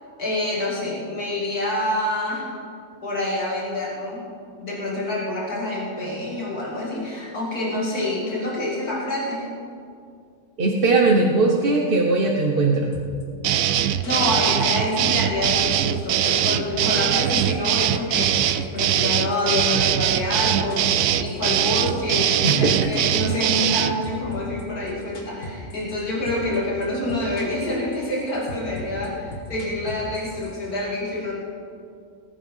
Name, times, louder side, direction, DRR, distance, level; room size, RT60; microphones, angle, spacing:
voice 1, 0.2-2.5 3.0-4.2 4.6-9.5 13.8-31.3, left 1 dB, 90° left, -5 dB, 3.3 m, -27 dB
voice 2, 10.6-12.9 22.4-22.9, right 3 dB, 40° right, 0 dB, 1.1 m, -19 dB
sound 1, 12.9-13.2 13.5-14.9 15.1-17.1 17.4-17.7 17.9-22.1 22.4-23.8 24.0-26.0 26.3-26.6 26.8-27.7 27.9-30.6, equal, 55° left, 2.2 m, -37 dB
sound 2, 13.4-24.0, right 11 dB, 70° right, 0.9 m, -22 dB
19.5 x 9.0 x 5.5 m, 2.4 s
omnidirectional pair, 1.6 m